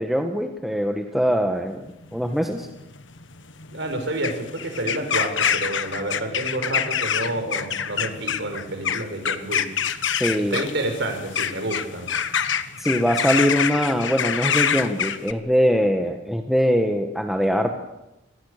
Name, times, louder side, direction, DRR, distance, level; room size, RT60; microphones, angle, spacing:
voice 1, 0.0-2.7 10.1-10.6 12.8-17.7, equal, ahead, 3 dB, 1.6 m, -22 dB
sound 1, 1.9-15.3, left 8 dB, 75° left, 1.4 m, -26 dB
voice 2, 3.7-9.6 10.4-12.1, right 1 dB, 65° right, 5 dB, 6.0 m, -29 dB
28.0 x 22.0 x 6.8 m, 0.93 s
head